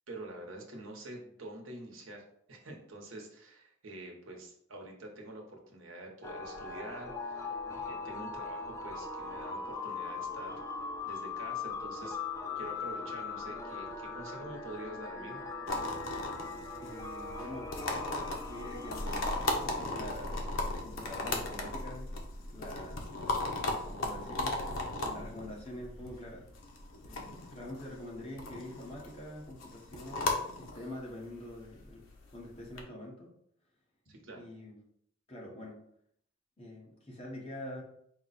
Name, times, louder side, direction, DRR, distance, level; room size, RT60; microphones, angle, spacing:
voice 1, 0.1-12.2 12.6-15.5 34.1-34.5, right 1 dB, 80° right, 0 dB, 1.0 m, -47 dB
sound 1, 6.2-19.7, left 4 dB, 15° left, 0.4 m, -40 dB
sound 2, 15.7-32.8, left 2 dB, 90° left, 0.8 m, -37 dB
voice 2, 16.8-17.7 18.3-22.2 22.5-23.1 23.6-24.6 25.0-26.4 27.0-32.0 32.3-33.3 34.3-34.8 35.3-35.8 36.6-37.8, left 1 dB, 30° left, -3 dB, 1.1 m, -45 dB
4.6 x 2.2 x 4.0 m, 0.68 s
head